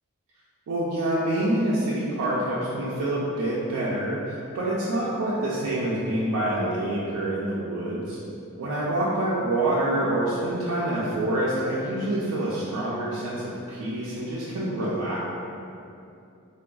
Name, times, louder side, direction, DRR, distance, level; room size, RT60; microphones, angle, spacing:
voice 1, 0.7-8.2 8.6-15.2, right 1 dB, 85° right, -7 dB, 0.4 m, -26 dB
3.4 x 2.2 x 2.3 m, 2.6 s
head